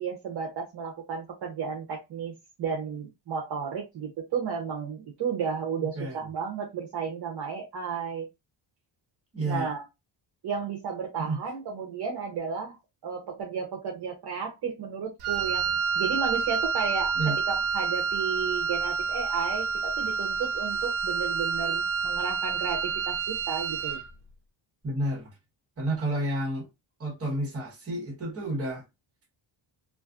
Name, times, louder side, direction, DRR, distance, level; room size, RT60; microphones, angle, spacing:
voice 1, 0.0-8.3 9.4-9.8 10.4-12.8 13.0-17.1 17.5-24.0, right 6 dB, 50° right, 0.7 m, -33 dB
voice 2, 5.8-6.2 9.3-9.7 11.2-11.4 17.1-17.4 24.8-25.3 25.8-26.7 27.0-28.8, right 1 dB, 30° right, 1.1 m, -30 dB
Wind instrument woodwind instrument, 15.2-24.1, right 5 dB, 90° right, 0.6 m, -28 dB
2.5 x 2.4 x 2.4 m
wide cardioid pair, 175°, 49 cm